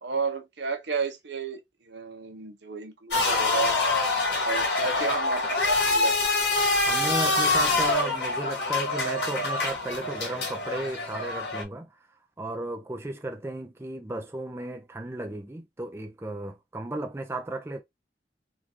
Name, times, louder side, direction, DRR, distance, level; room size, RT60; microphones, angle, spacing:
voice 1, 0.0-3.8 4.4-6.5, right 5 dB, 80° right, 0.9 m, -33 dB
sound 1, 3.1-11.6, left 3 dB, 80° left, 1.7 m, -25 dB
voice 2, 6.8-11.9 12.4-17.8, right 1 dB, 15° right, 0.4 m, -34 dB
3.7 x 2.5 x 2.9 m
head